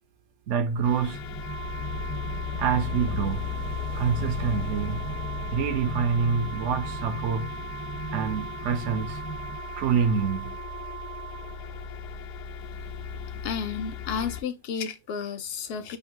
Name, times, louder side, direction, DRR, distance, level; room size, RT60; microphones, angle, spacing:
voice 1, 0.5-1.2 2.6-3.5 3.9-5.1 5.5-7.5 8.1-9.2 9.8-10.6, right 6 dB, 65° right, 0.7 m, -26 dB
sound 1, 0.7-14.4, left 6 dB, 85° left, 1.2 m, -36 dB
sound 2, 1.1-9.6, right 3 dB, 15° left, 0.6 m, -40 dB
Organ, 1.4-12.1, right 15 dB, 85° right, 1.1 m, -41 dB
voice 2, 13.4-16.0, left 6 dB, 65° left, 0.6 m, -32 dB
5.3 x 2.0 x 3.7 m
omnidirectional pair, 1.6 m